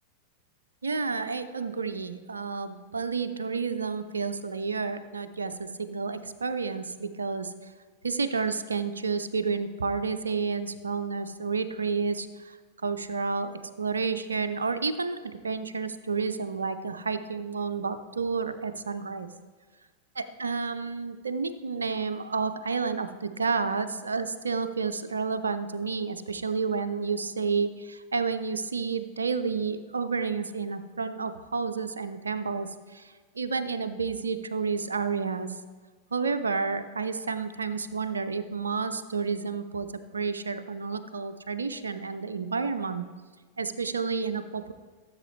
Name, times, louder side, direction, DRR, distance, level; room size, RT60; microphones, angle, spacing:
voice 1, 0.8-7.5 8.0-12.6 12.8-19.3 20.2-35.5 36.1-39.9 40.1-43.1 43.6-44.7, right 5 dB, 75° right, 10 dB, 0.5 m, -30 dB
14.5 x 7.3 x 3.3 m, 1.4 s
figure-of-eight pair, 90°, 0 cm